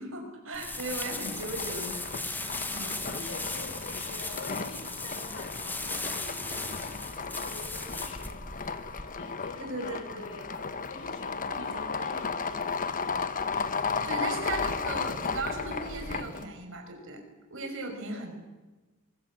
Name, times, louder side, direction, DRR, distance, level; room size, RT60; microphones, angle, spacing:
voice 1, 0.0-3.0 9.6-10.2 11.5-11.6 13.8-17.2 17.5-18.3, right 2 dB, 65° right, 4 dB, 5.8 m, -37 dB
sound 1, 0.5-9.0, left 2 dB, 10° left, 1.6 m, -37 dB
sound 2, 0.9-16.5, left 5 dB, 40° left, 1.2 m, -35 dB
voice 2, 3.0-12.7 18.1-18.2, left 2 dB, 85° left, 4 dB, 6.3 m, -46 dB
23.5 x 22.0 x 7.5 m, 1.2 s
head